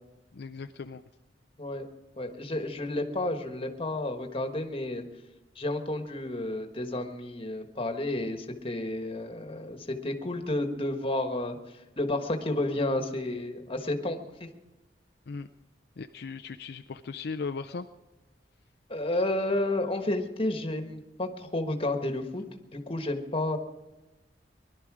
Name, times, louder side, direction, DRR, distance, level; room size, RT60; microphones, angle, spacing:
voice 1, 0.3-1.0 15.3-15.5 16.0-17.9, left 4 dB, 65° left, 8 dB, 0.5 m, -37 dB
voice 2, 2.2-5.0 5.5-11.6 12.0-14.5 18.9-22.4 22.7-23.6, left 1 dB, 30° left, 5 dB, 1.5 m, -31 dB
21.0 x 12.0 x 4.9 m, 1.1 s
head